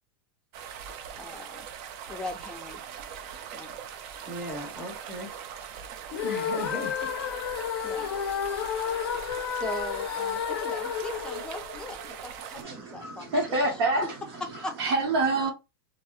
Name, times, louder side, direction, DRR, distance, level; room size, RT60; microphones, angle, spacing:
sound 1, 0.5-12.6, right 8 dB, 50° right, 0.4 m, -41 dB
voice 1, 1.1-1.7 2.1-2.8 3.5-3.8 7.8-8.1 9.6-13.6 14.6-14.7, left 2 dB, 5° left, 0.5 m, -39 dB
voice 2, 4.3-5.3 6.2-7.3, left 1 dB, 10° right, 0.8 m, -37 dB
sound 2, 6.1-12.3, left 8 dB, 85° left, 0.4 m, -31 dB
voice 3, 12.6-15.5, right 2 dB, 75° right, 0.9 m, -27 dB
2.2 x 2.0 x 2.8 m
supercardioid pair, 130°, 13 cm